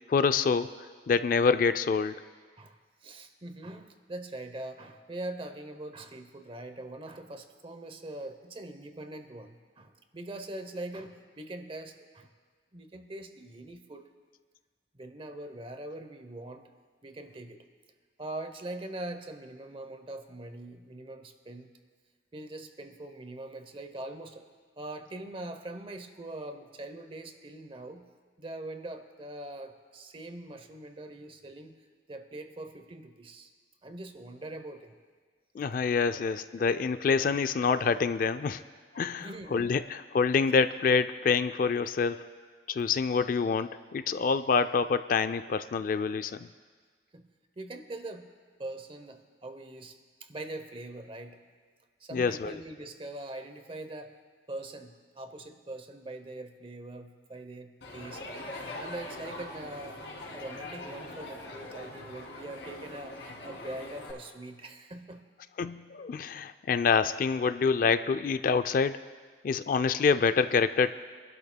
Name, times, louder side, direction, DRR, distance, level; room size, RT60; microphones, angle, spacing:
voice 1, 0.1-0.7 1.1-2.2 35.6-38.6 38.9-42.3 42.7-46.5 52.1-52.6 65.6-69.0 69.4-70.9, left 5 dB, 50° left, 12 dB, 0.3 m, -26 dB
voice 2, 2.6-12.3 12.7-14.1 14.9-16.7 17.0-17.6 18.2-21.7 22.3-24.4 24.8-28.1 28.4-31.8 32.1-33.5 33.8-34.9 36.1-36.2 39.2-39.7 47.1-47.3 47.6-48.3 48.6-51.4 52.0-54.2 54.5-58.3 58.8-60.0 60.3-65.2, right 2 dB, 30° right, 8 dB, 0.8 m, -42 dB
Crowd, 57.8-64.1, left 2 dB, 85° left, 2.9 m, -42 dB
25.0 x 12.0 x 2.2 m, 1.5 s
head